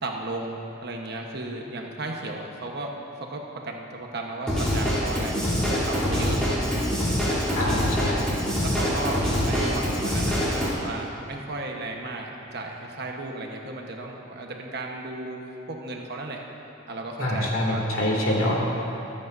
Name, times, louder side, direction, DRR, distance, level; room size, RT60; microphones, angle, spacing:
voice 1, 0.0-2.9 3.2-6.4 7.8-8.2 8.6-15.4 15.7-16.4 16.9-17.8, right 2 dB, 55° right, 1 dB, 1.1 m, -34 dB
Drum kit / Drum, 4.5-10.7, equal, 5° left, 3.0 m, -25 dB
voice 2, 7.6-8.3 17.2-18.5, left 1 dB, 75° left, -3 dB, 2.5 m, -25 dB
25.0 x 8.6 x 2.6 m, 2.9 s
head